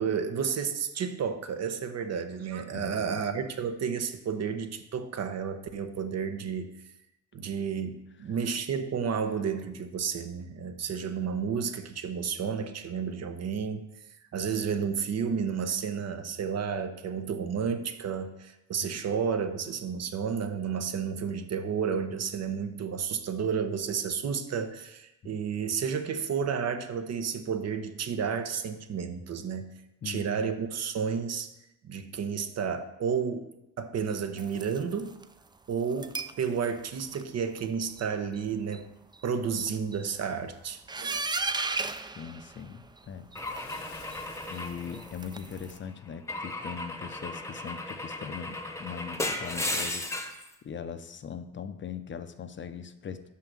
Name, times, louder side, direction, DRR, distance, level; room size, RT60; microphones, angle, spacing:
voice 1, 0.0-6.7 7.3-13.9 14.3-29.7 30.0-31.5 31.8-33.5 33.8-35.2 35.7-38.9 39.2-41.2, right 6 dB, 55° right, 8 dB, 0.9 m, -31 dB
voice 2, 2.7-3.2 18.8-18.9 25.2-25.4 30.0-30.5 42.1-43.3 44.5-50.1 50.6-53.2, left 7 dB, 40° left, 10 dB, 0.7 m, -40 dB
sound 1, 34.4-35.2 35.9-36.4 36.8-37.2 37.6-37.7 38.0-38.1 38.3-38.4 38.7-38.8 39.1-39.2 39.5-40.0 40.9-43.0 43.3-45.8, right 3 dB, 15° right, 0.4 m, -36 dB
Bathtub (filling or washing) / Splash splatter, 43.4-46.0, left 7 dB, 65° left, 1.0 m, -52 dB
Car / Engine / Glass, 43.4-45.6 46.3-50.5, left 1 dB, 10° left, 1.0 m, -35 dB
6.3 x 5.7 x 6.0 m, 0.90 s
cardioid pair, 90°, 30 cm